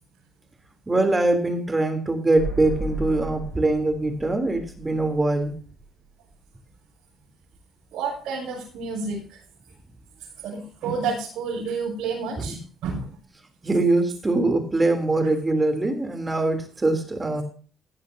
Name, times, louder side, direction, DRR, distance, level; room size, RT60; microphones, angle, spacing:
voice 1, 0.9-5.5 12.4-12.6 13.6-17.4, right 2 dB, 20° right, 7 dB, 3.3 m, -23 dB
sound 1, 2.3-6.1 6.3-6.4, right 2 dB, 70° right, 5.7 m, -35 dB
voice 2, 7.9-9.4 10.4-13.2, right 4 dB, 85° right, -4 dB, 6.1 m, -30 dB
16.0 x 11.0 x 2.8 m, 0.40 s
cardioid pair, 90°, 0 cm